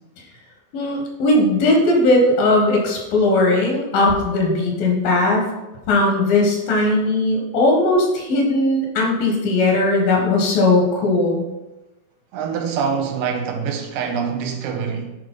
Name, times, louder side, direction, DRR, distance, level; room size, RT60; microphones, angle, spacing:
voice 1, 0.7-5.4 5.9-11.4, left 2 dB, 80° left, 3.3 m, -18 dB
voice 2, 12.3-15.1, right 6 dB, 80° right, 2.5 m, -25 dB
8.9 x 4.7 x 3.8 m
omnidirectional pair, 4.0 m